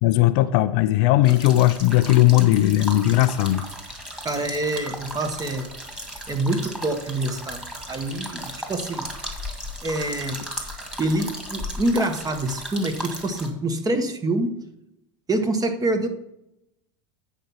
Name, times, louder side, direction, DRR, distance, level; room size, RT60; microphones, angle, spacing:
voice 1, 0.0-3.7, left 15 dB, 60° left, 13 dB, 0.5 m, -18 dB
sound 1, 1.2-13.5, equal, 5° right, 2.2 m, -36 dB
voice 2, 4.2-5.7 6.3-7.6 7.9-9.1 9.8-10.7 11.0-14.6 15.3-16.1, right 2 dB, 20° right, 6 dB, 1.4 m, -26 dB
9.1 x 4.5 x 5.6 m, 0.82 s
hypercardioid pair, 85°, 16 cm